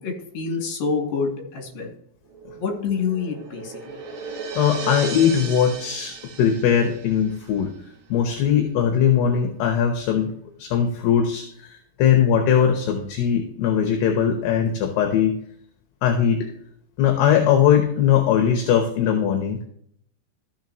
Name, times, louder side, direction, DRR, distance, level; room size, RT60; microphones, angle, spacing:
voice 1, 0.0-1.9 2.6-4.0, left 5 dB, 60° left, 0 dB, 3.9 m, -27 dB
sound 1, 2.2-7.5, right 5 dB, 60° right, 3.7 m, -36 dB
voice 2, 4.6-7.7 8.1-10.3 10.6-15.4 16.0-16.5 17.0-19.6, left 8 dB, 75° left, 4 dB, 3.1 m, -20 dB
14.5 x 7.1 x 3.0 m, 0.66 s
omnidirectional pair, 5.0 m